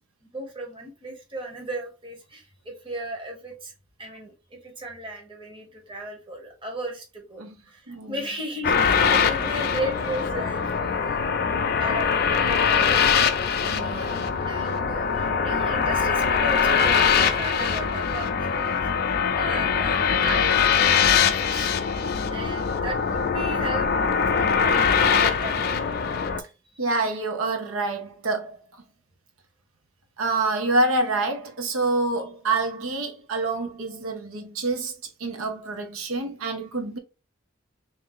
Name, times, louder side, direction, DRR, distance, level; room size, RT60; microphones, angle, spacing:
voice 1, 0.3-3.7 4.0-11.2 11.8-13.0 14.4-21.8 22.3-23.9 24.3-25.8, right 1 dB, 25° right, 0.9 m, -35 dB
sound 1, 8.6-26.4, left 6 dB, 45° left, 0.4 m, -22 dB
voice 2, 13.6-14.2 26.8-28.6 30.2-37.0, right 2 dB, 80° right, 0.7 m, -27 dB
3.4 x 2.6 x 3.7 m
head